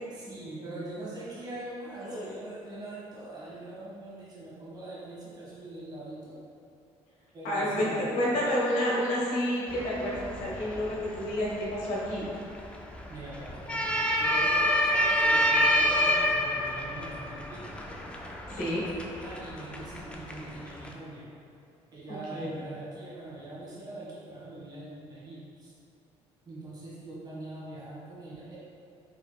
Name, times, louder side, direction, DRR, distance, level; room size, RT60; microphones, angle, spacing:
voice 1, 0.1-6.4 7.3-8.3 13.1-17.7 18.5-21.3 21.9-25.7 26.4-28.6, right 2 dB, 35° right, -8 dB, 1.4 m, -43 dB
voice 2, 7.4-12.3 18.5-18.8 22.3-22.5, equal, 90° left, -6 dB, 1.2 m, -29 dB
sound 1, 9.7-20.9, equal, 10° left, 0.4 m, -29 dB
4.7 x 3.2 x 2.3 m, 2.6 s
cardioid pair, 105°, 12 cm